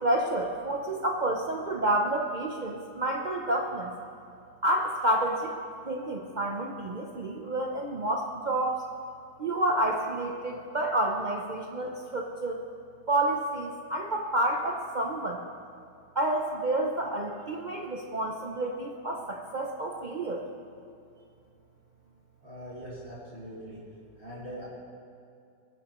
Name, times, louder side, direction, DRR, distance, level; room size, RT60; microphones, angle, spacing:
voice 1, 0.0-3.9 4.6-5.5 5.8-8.8 9.4-12.6 13.1-15.4 16.1-20.4, right 1 dB, 85° right, 0 dB, 0.4 m, -29 dB
voice 2, 22.4-23.8 24.2-24.7, equal, 35° right, -8 dB, 2.8 m, -42 dB
19.5 x 9.4 x 3.0 m, 2.5 s
omnidirectional pair, 1.9 m